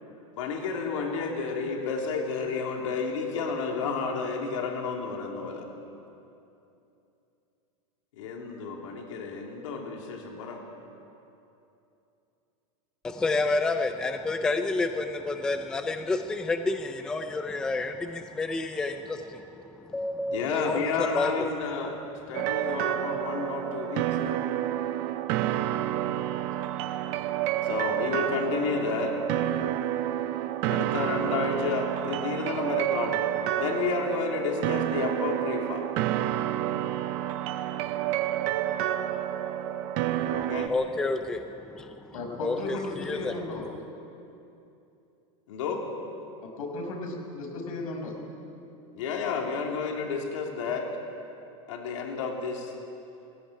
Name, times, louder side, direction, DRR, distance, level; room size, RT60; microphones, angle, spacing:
voice 1, 0.4-5.7 8.2-10.6 20.3-22.0 22.3-24.4 27.6-29.1 30.7-33.2 33.6-35.8 40.3-40.7 45.5-45.8 48.9-50.9 51.7-52.7, left 4 dB, 65° left, 1 dB, 3.2 m, -31 dB
voice 2, 13.0-21.5 40.4-42.1 42.4-43.3, left 3 dB, 5° left, 7 dB, 0.4 m, -30 dB
sound 1, 22.3-40.7, right 12 dB, 35° right, 0.6 m, -29 dB
voice 3, 42.1-43.7 46.6-48.2, left 2 dB, 90° left, 1 dB, 5.6 m, -35 dB
18.0 x 16.5 x 10.0 m, 2.8 s
supercardioid pair, 180°, 17 cm